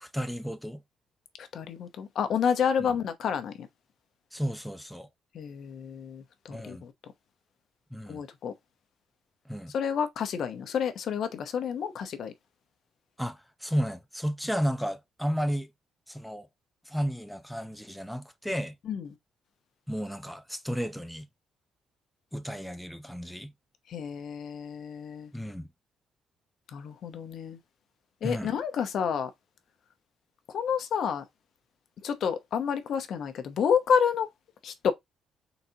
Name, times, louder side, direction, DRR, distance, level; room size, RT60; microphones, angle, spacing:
voice 1, 0.0-0.8 4.3-5.1 6.5-6.8 7.9-8.2 9.5-9.7 13.2-15.7 16.1-16.5 16.9-18.7 19.9-21.3 22.3-23.5 25.3-25.7 28.2-28.5, equal, ahead, 0.6 m, -33 dB
voice 2, 1.4-3.7 5.3-6.9 8.1-8.5 9.7-12.3 18.8-19.1 23.9-25.3 26.7-27.6 28.2-29.3 30.5-31.2 32.0-34.3 34.6-34.9, left 7 dB, 65° left, 0.9 m, -29 dB
4.2 x 4.0 x 2.8 m
cardioid pair, 90°, 0 cm